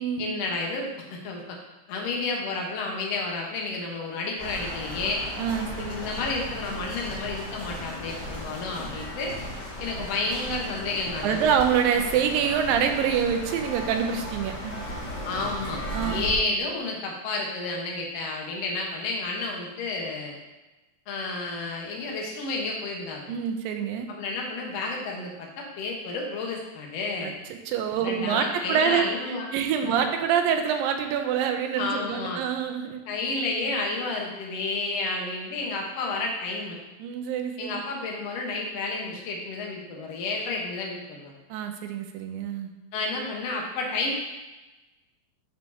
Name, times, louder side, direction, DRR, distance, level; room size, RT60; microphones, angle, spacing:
voice 1, 0.2-1.6 1.9-5.2 5.8-9.3 9.8-11.6 15.2-20.3 21.1-23.4 24.1-27.3 28.0-29.5 31.8-32.4 33.1-36.8 37.6-41.3 42.9-44.1, left 3 dB, 60° left, -1 dB, 1.9 m, -31 dB
sound 1, 4.4-16.4, equal, 40° left, 2.1 m, -36 dB
voice 2, 5.4-5.9 11.2-14.8 15.9-16.3 23.3-24.1 27.2-27.3 27.7-33.0 37.0-37.8 41.5-42.7, right 7 dB, 90° right, 6 dB, 2.4 m, -26 dB
12.5 x 4.4 x 2.8 m, 1.1 s
omnidirectional pair, 4.0 m